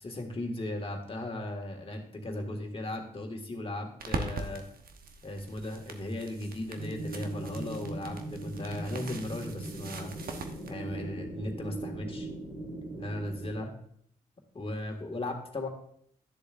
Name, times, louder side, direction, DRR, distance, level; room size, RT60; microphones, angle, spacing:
voice 1, 0.0-4.7 5.2-10.1 10.7-12.3 13.0-13.7 14.5-15.7, left 1 dB, 35° left, 2 dB, 1.9 m, -37 dB
sound 1, 4.0-10.7, right 4 dB, 60° right, 1.1 m, -42 dB
sound 2, 6.7-13.6, right 2 dB, 5° right, 3.3 m, -39 dB
11.0 x 6.9 x 2.6 m, 0.66 s
supercardioid pair, 50°, 17 cm